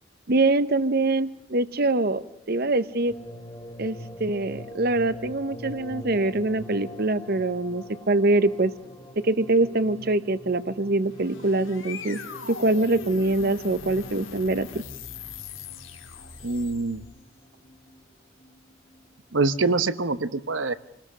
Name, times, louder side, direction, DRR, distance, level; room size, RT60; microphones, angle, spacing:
voice 1, 0.3-3.1 3.8-8.7 9.2-12.2 12.5-14.8, right 2 dB, 50° right, 14 dB, 0.9 m, -24 dB
sound 1, 3.1-19.2 19.6-19.7, equal, 20° left, 2.3 m, -44 dB
sound 2, 10.9-17.2, left 5 dB, 85° left, 2.8 m, -41 dB
voice 2, 16.4-17.0 19.3-20.7, right 3 dB, 75° right, 12 dB, 1.1 m, -25 dB
28.0 x 19.5 x 6.3 m, 0.74 s
head